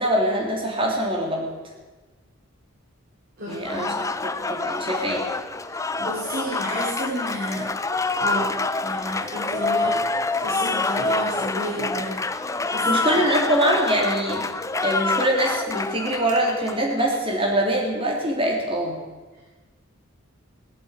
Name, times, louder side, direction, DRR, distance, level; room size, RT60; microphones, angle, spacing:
voice 1, 0.0-1.5 3.5-5.2 12.8-14.5 14.8-19.0, right 1 dB, 25° right, -1 dB, 3.3 m, -23 dB
voice 2, 3.4-3.9 5.8-7.8 8.2-8.5 8.8-10.0 10.3-13.2, equal, 45° right, -6 dB, 4.5 m, -31 dB
Applause, 3.5-17.2, left 3 dB, 15° left, 0.5 m, -27 dB
19.0 x 8.0 x 9.0 m, 1.3 s
head